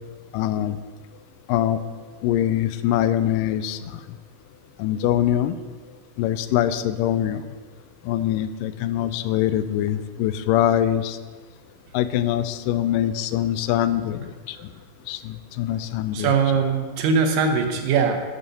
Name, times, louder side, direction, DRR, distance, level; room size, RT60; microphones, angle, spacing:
voice 1, 0.3-0.8 1.5-1.8 2.2-4.0 4.8-5.6 6.2-7.4 8.0-11.2 11.9-14.7 15.1-16.3, left 11 dB, 80° left, 13 dB, 2.1 m, -23 dB
voice 2, 16.1-18.2, right 5 dB, 75° right, 5 dB, 2.7 m, -21 dB
10.5 x 8.3 x 5.5 m, 1.4 s
omnidirectional pair, 4.1 m